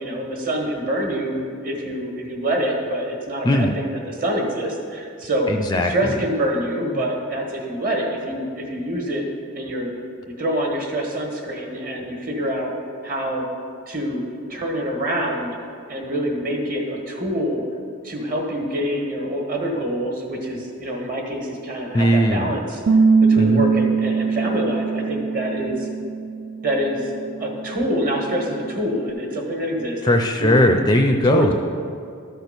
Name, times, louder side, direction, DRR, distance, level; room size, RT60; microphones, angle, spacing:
voice 1, 0.0-5.5 5.9-9.2 9.5-9.9 10.3-12.7 13.0-13.5 13.9-14.2 14.5-15.6 15.9-17.6 18.0-22.8 23.2-25.9 26.6-27.1 27.4-30.7 31.2-31.5, equal, 40° right, 0 dB, 1.5 m, -26 dB
voice 2, 5.5-5.9 21.9-22.6 23.4-23.6 30.0-31.5, left 1 dB, 20° left, 4 dB, 0.4 m, -18 dB
Bass guitar, 22.9-29.1, right 5 dB, 60° right, 0.3 m, -22 dB
13.0 x 4.5 x 6.7 m, 2.5 s
head